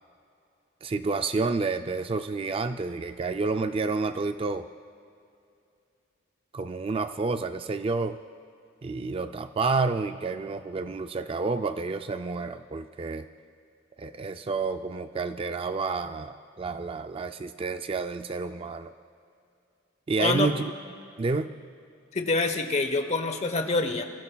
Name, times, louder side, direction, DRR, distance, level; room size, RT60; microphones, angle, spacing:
voice 1, 0.8-4.7 6.5-8.2 8.8-13.3 14.0-18.9 20.1-20.7 21.2-21.5, right 4 dB, 30° right, 9 dB, 0.3 m, -29 dB
voice 2, 20.2-20.5 22.1-24.0, left 3 dB, 35° left, 7 dB, 1.0 m, -26 dB
24.5 x 15.5 x 2.3 m, 2.5 s
head